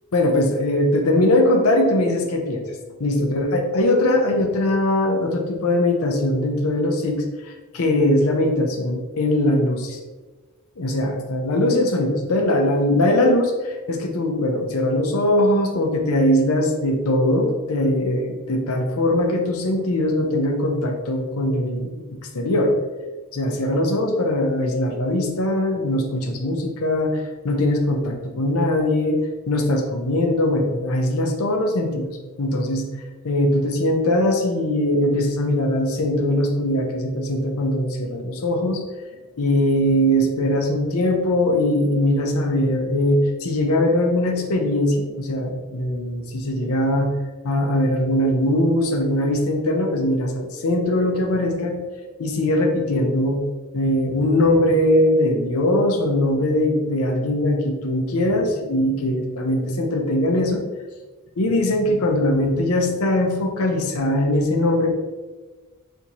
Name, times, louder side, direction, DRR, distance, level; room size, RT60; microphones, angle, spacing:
voice 1, 0.1-2.6 3.0-10.0 10.8-22.7 23.3-29.2 29.5-32.9 33.2-38.8 39.4-47.1 47.4-51.8 52.2-53.4 53.7-60.6 61.4-64.9, left 1 dB, 75° left, 3 dB, 0.7 m, -21 dB
4.1 x 3.4 x 2.9 m, 1.3 s
head